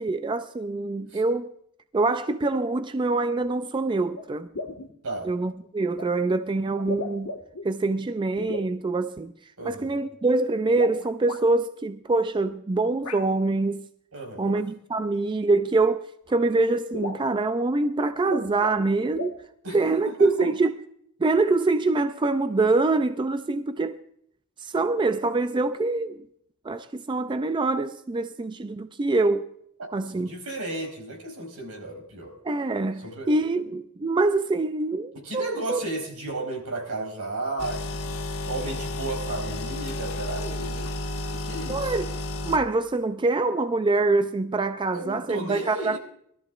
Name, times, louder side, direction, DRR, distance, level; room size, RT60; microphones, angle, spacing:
voice 1, 0.0-1.5 1.9-4.5 5.2-7.3 7.6-9.3 9.6-13.8 14.4-16.0 16.3-19.3 19.7-20.7 21.2-24.0 24.6-26.2 26.6-29.5 29.9-30.3 32.4-35.8 41.7-42.2 42.4-46.0, right 3 dB, 20° right, 0.4 m, -25 dB
sound 1, 3.4-3.5 4.1-4.3 4.5-4.9 6.0-6.1 6.8-7.7 8.4-8.7 10.7-11.4 13.0-13.2 14.5-14.6 15.8-15.9 16.3-16.4 16.6-16.7 16.9-17.3 18.1-18.9 19.1-19.4, left 3 dB, 85° left, 1.4 m, -35 dB
voice 2, 9.6-10.0 14.1-14.5 19.6-20.5 29.8-32.4 33.0-33.3 35.1-40.9 41.3-41.9 44.9-46.0, right 2 dB, 90° right, 4.1 m, -34 dB
sound 2, 37.6-42.6, left 1 dB, 70° left, 1.4 m, -32 dB
21.5 x 13.0 x 2.4 m
head